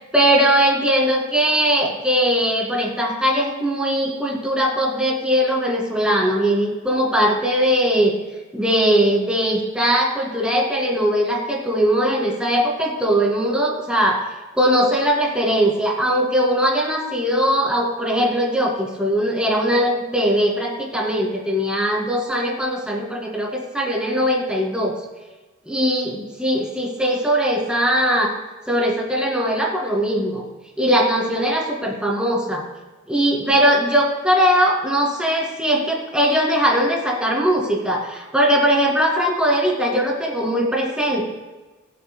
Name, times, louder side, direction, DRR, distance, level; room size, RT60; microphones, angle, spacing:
voice 1, 0.1-8.1 8.5-14.2 14.5-24.9 25.7-28.3 28.7-30.4 30.8-32.6 33.1-41.3, equal, 5° right, -2 dB, 2.2 m, -20 dB
23.0 x 8.3 x 2.2 m, 1.2 s
head